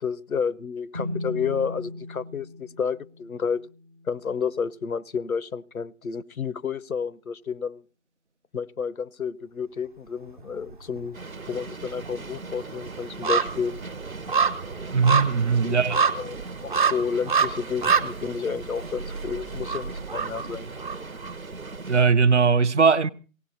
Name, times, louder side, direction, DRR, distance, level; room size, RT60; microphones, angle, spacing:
voice 1, 0.0-3.7 4.1-7.8 8.5-11.2 11.5-13.7 15.9-20.7, left 6 dB, 85° left, 0.7 m, -30 dB
sound 1, 0.9-4.5, left 1 dB, 15° right, 0.7 m, -37 dB
sound 2, 10.3-11.1 11.3-21.3 21.7-21.8, right 5 dB, 35° right, 1.0 m, -27 dB
sound 3, 11.1-22.0, right 3 dB, 80° right, 1.2 m, -39 dB
voice 2, 14.9-16.0 21.9-23.1, right 5 dB, 55° right, 0.7 m, -20 dB
24.0 x 17.5 x 2.7 m
figure-of-eight pair, 150°, 42 cm